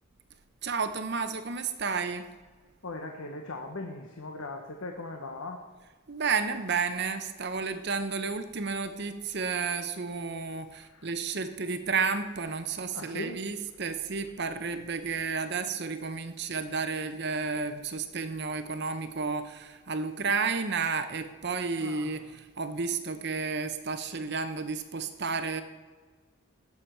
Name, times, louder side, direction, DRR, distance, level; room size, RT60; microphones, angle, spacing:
voice 1, 0.6-2.3 6.1-25.6, right 5 dB, 50° right, 9 dB, 0.8 m, -32 dB
voice 2, 2.8-5.6 10.7-11.1 12.9-13.4 21.8-22.1, left 2 dB, 75° left, 3 dB, 1.1 m, -39 dB
17.0 x 7.1 x 4.5 m, 1.4 s
head